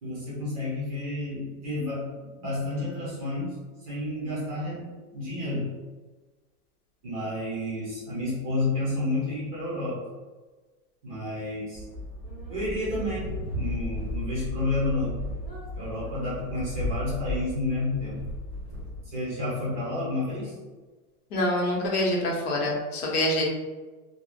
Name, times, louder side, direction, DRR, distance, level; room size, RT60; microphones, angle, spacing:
voice 1, 0.0-3.5 3.8-5.7 7.0-10.0 11.0-11.8 12.5-15.2 15.7-18.2 19.1-20.5, left 2 dB, 25° right, -8 dB, 0.5 m, -30 dB
sound 1, 11.8-19.1, left 1 dB, 10° left, 0.8 m, -34 dB
voice 2, 21.3-23.4, left 1 dB, 70° left, -2 dB, 0.9 m, -26 dB
3.1 x 2.0 x 2.4 m, 1.3 s
supercardioid pair, 175°, 46 cm